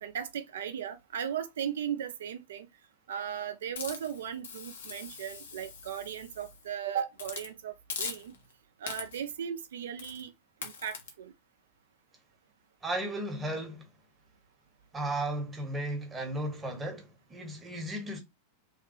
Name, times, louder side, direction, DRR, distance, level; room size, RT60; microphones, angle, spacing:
voice 1, 0.0-2.7 3.1-8.3 8.8-10.3 10.6-11.3, right 8 dB, 60° right, 0.4 m, -37 dB
Hiss, 3.8-6.6 7.2-7.5 7.9-8.5 8.9-9.3 10.0-10.2 10.6-11.1, left 5 dB, 65° left, 0.7 m, -41 dB
voice 2, 12.8-13.9 14.9-18.2, right 1 dB, 15° right, 0.9 m, -35 dB
3.1 x 2.2 x 2.8 m
figure-of-eight pair, 90°, 0 cm